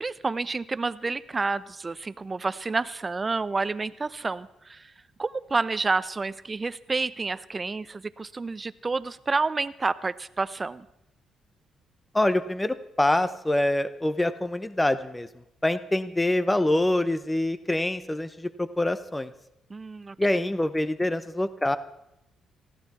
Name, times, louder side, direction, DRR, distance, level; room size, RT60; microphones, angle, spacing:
voice 1, 0.0-4.9 5.2-10.9 19.7-20.5, right 3 dB, 25° right, 15 dB, 0.7 m, -29 dB
voice 2, 12.1-15.3 15.6-19.3 20.2-21.8, left 1 dB, 10° left, 13 dB, 0.8 m, -25 dB
19.5 x 15.0 x 4.2 m, 0.83 s
cardioid pair, 90°, 0 cm